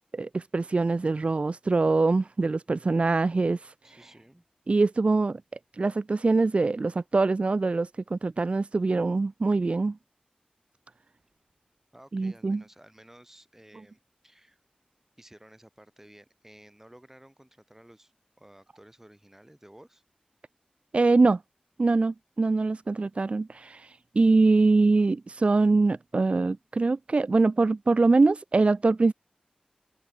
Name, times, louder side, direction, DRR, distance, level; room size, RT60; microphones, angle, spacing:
voice 1, 0.1-3.7 4.7-5.4 5.8-10.0 12.1-12.6 20.9-21.4 21.8-23.9 24.1-29.1, right 3 dB, 50° right, 0.4 m, -23 dB
voice 2, 3.8-4.5 11.9-14.6 15.2-18.1 18.4-20.0, right 1 dB, 15° right, 5.4 m, -54 dB
cardioid pair, 50°, 3 cm